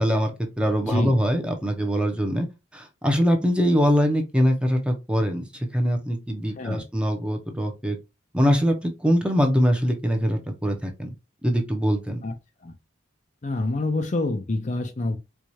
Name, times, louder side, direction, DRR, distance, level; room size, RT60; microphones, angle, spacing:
voice 1, 0.0-2.5 2.7-8.0 8.3-11.1 11.4-12.2, equal, 5° right, 0.7 m, -23 dB
voice 2, 0.9-1.2 6.6-6.9 12.2-12.3 12.6-12.7 13.4-15.2, left 2 dB, 40° left, 0.5 m, -27 dB
4.6 x 2.4 x 2.7 m
head